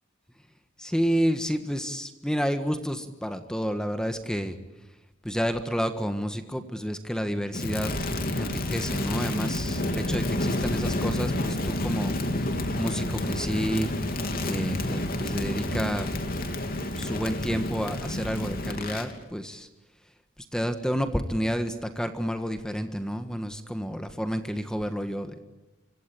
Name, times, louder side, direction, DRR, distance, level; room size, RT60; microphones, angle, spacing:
voice 1, 0.8-4.6 5.2-8.0 8.3-12.1 12.8-13.9 14.4-16.1 17.0-19.7 20.5-25.4, equal, 5° left, 7 dB, 1.5 m, -30 dB
Crackle, 7.5-19.1, left 1 dB, 50° left, 3.3 m, -29 dB
26.0 x 24.5 x 8.5 m, 1.0 s
head